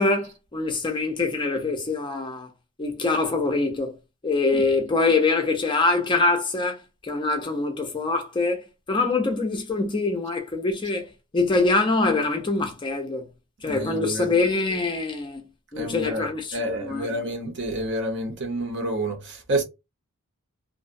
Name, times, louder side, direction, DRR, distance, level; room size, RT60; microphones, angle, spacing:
voice 1, 0.0-2.5 2.8-4.0 4.2-8.6 8.9-11.1 11.3-13.3 13.6-15.5 15.7-17.1, left 3 dB, 20° left, 0.4 m, -24 dB
voice 2, 13.6-14.3 15.8-19.6, right 1 dB, 55° right, 0.8 m, -29 dB
2.5 x 2.1 x 2.5 m
head